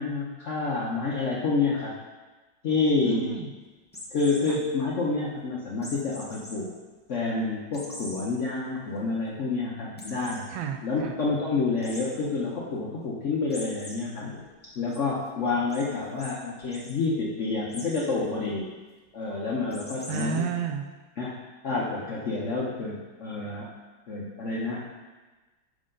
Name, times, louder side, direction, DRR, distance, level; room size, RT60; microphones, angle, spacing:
voice 1, 0.0-1.9 2.6-3.4 4.1-6.7 7.1-10.5 10.8-18.7 19.1-20.3 21.2-21.4 21.6-23.7 24.1-24.9, left 3 dB, 60° left, -4 dB, 0.8 m, -28 dB
voice 2, 3.0-3.5 4.5-4.6 10.5-11.2 20.1-20.8, right 7 dB, 85° right, 6 dB, 1.4 m, -31 dB
sound 1, 3.9-4.6 5.8-6.5 7.0-7.1 7.7-8.2 8.7-8.8 9.1-9.2 10.0-10.4 11.8-12.0 13.5-13.9 14.4-15.0 15.7-15.8 16.2-16.3 16.6-16.9 17.7-18.1 19.7-20.4, left 1 dB, 10° left, 0.5 m, -42 dB
6.5 x 5.4 x 3.8 m, 1.2 s
omnidirectional pair, 2.1 m